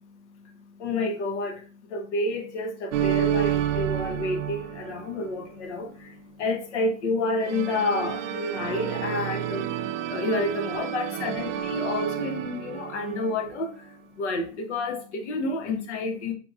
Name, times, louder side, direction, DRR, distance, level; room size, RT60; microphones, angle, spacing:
voice 1, 0.0-16.3, left 2 dB, 60° left, 0.9 m, -30 dB
sound 1, 2.9-5.6 7.4-13.7, right 11 dB, 70° right, 0.5 m, -30 dB
4.6 x 2.8 x 2.4 m
supercardioid pair, 170°, 39 cm